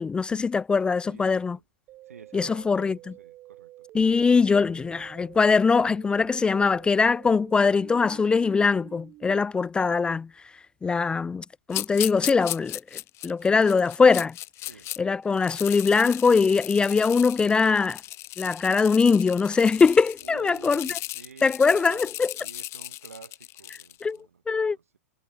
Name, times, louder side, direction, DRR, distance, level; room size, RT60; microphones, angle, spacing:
voice 1, 0.0-1.6 2.3-3.0 3.9-10.3 10.8-14.3 15.0-18.0 18.4-20.9 21.4-22.3 24.0-24.2 24.5-24.8, left 5 dB, 10° left, 0.3 m, -22 dB
voice 2, 1.1-1.6 2.1-3.9 14.7-14.9 20.2-25.0, right 6 dB, 85° right, 2.7 m, -49 dB
sound 1, 1.9-9.4, right 15 dB, 35° right, 1.1 m, -49 dB
sound 2, 11.7-15.0 15.3-24.0, left 16 dB, 35° left, 1.3 m, -36 dB
hypercardioid pair, 110°, 8 cm